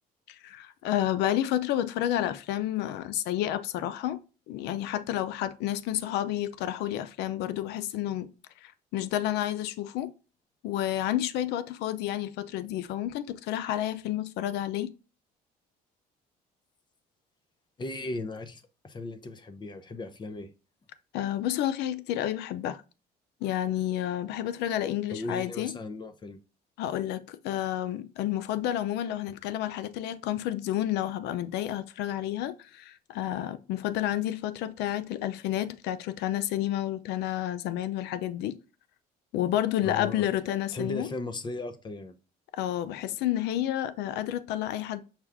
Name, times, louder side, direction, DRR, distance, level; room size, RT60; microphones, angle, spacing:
voice 1, 0.3-4.2 4.5-8.3 8.6-10.1 10.6-14.9 21.1-22.8 23.4-25.7 26.8-38.6 39.3-41.1 42.5-45.0, left 12 dB, 85° left, 0.5 m, -30 dB
voice 2, 17.8-20.5 25.1-26.4 39.8-40.3 40.7-42.1, left 2 dB, 25° left, 0.6 m, -37 dB
5.8 x 2.3 x 3.4 m
cardioid pair, 110°, 17 cm